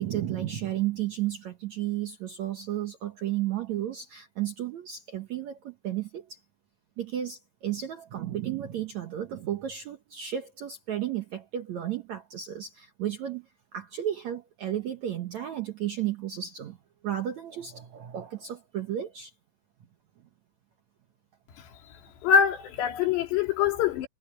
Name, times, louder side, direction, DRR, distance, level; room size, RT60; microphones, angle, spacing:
voice 1, 0.0-6.4 7.0-16.8 17.0-19.3, right 11 dB, 70° right, 1.7 m, -33 dB
voice 2, 22.2-24.1, left 7 dB, 80° left, 4.7 m, -24 dB
omnidirectional pair, 4.8 m